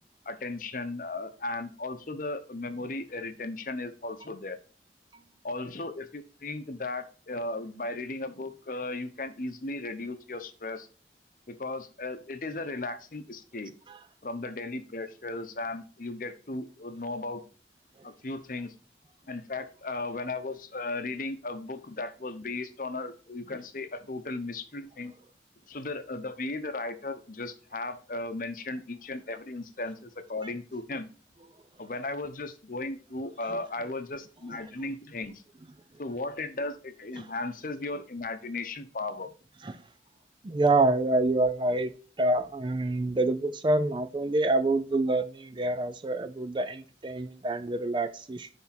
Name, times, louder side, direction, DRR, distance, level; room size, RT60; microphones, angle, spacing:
voice 1, 0.3-4.6 5.4-10.9 11.5-13.7 14.2-17.4 18.0-18.7 19.3-25.1 25.7-31.1 31.8-35.4 36.0-39.3, left 2 dB, 50° left, 10 dB, 0.8 m, -36 dB
voice 2, 40.4-41.9 42.2-48.5, right 2 dB, 25° right, 11 dB, 0.4 m, -27 dB
9.6 x 3.5 x 4.3 m, 0.38 s
head